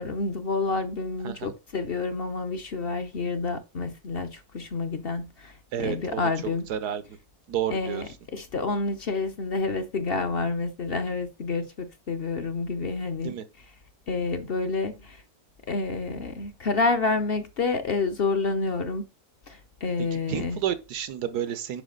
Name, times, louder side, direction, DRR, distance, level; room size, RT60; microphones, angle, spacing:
voice 1, 0.0-6.7 7.7-13.3 14.1-15.2 15.7-19.0 19.5-20.6, left 3 dB, 45° left, 0.9 m, -29 dB
voice 2, 5.7-6.3 6.7-7.0 7.5-8.0 13.2-13.4 20.0-21.8, right 10 dB, 90° right, 1.5 m, -31 dB
8.5 x 5.7 x 3.8 m
omnidirectional pair, 1.6 m